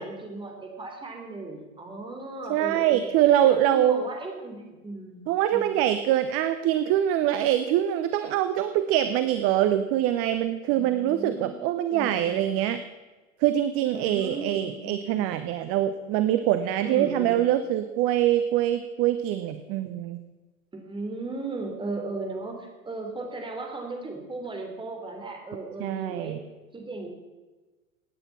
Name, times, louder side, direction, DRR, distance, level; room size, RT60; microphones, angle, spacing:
voice 1, 0.0-3.1 3.4-5.8 10.7-11.6 11.9-12.5 13.9-15.4 16.8-17.4 20.7-26.4 26.7-27.1, right 3 dB, 10° right, 2 dB, 3.1 m, -36 dB
voice 2, 2.5-4.0 5.3-12.8 13.4-20.2 25.8-26.4, right 12 dB, 35° right, 11 dB, 0.8 m, -24 dB
17.5 x 9.2 x 5.9 m, 1.2 s
figure-of-eight pair, 95°, 41 cm